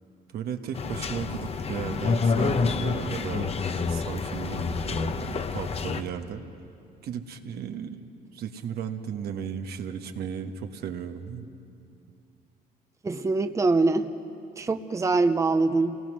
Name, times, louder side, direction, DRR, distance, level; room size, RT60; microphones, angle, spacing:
voice 1, 0.3-3.5 3.9-6.4 7.0-8.0 8.3-11.5, right 7 dB, 75° right, 6 dB, 1.4 m, -35 dB
sound 1, 0.7-6.0, left 4 dB, 40° left, 1.0 m, -28 dB
voice 2, 13.0-14.1 14.6-16.0, right 3 dB, 20° right, 8 dB, 0.7 m, -23 dB
28.5 x 19.0 x 6.3 m, 2.5 s
cardioid pair, 95°, 17 cm